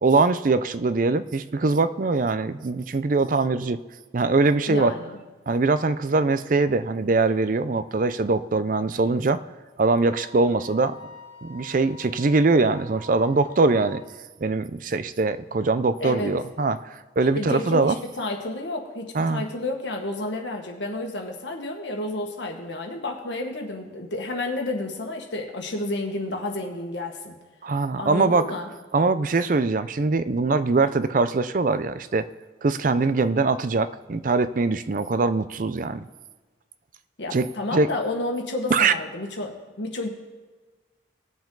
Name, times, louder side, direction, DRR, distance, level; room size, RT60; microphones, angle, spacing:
voice 1, 0.0-3.8 4.1-4.9 5.5-9.4 9.8-10.9 11.4-14.0 14.4-16.8 17.2-18.0 19.1-19.4 27.6-28.5 28.9-32.3 32.6-36.0 37.3-37.9 38.7-38.9, right 3 dB, 45° right, 13 dB, 0.5 m, -22 dB
voice 2, 4.7-5.2 16.0-16.4 17.3-27.4 28.0-28.7 37.2-40.1, left 2 dB, 75° left, 2 dB, 1.6 m, -31 dB
Wind instrument woodwind instrument, 10.1-14.0, left 2 dB, 60° right, 2.6 m, -46 dB
19.0 x 7.1 x 3.9 m, 1.3 s
head